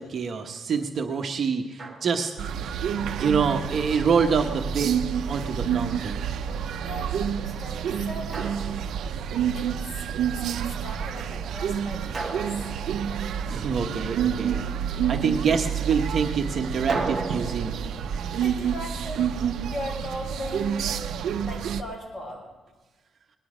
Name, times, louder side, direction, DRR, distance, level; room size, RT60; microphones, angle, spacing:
voice 1, 0.0-2.3 3.1-4.9 5.3-6.3 13.5-14.6 15.1-17.8, right 6 dB, 45° right, 4 dB, 1.0 m, -26 dB
Drum, 1.8-2.5 4.5-5.6 8.3-9.5 12.1-13.8 16.9-19.9, right 3 dB, 20° right, 1.3 m, -37 dB
sound 1, 2.4-21.8, right 8 dB, 80° right, 0.6 m, -29 dB
voice 2, 6.8-7.2 7.4-8.6 9.5-12.6 18.3-22.5, equal, 25° left, -2 dB, 5.5 m, -38 dB
19.0 x 11.5 x 5.0 m, 1.3 s
cardioid pair, 160°, 0 cm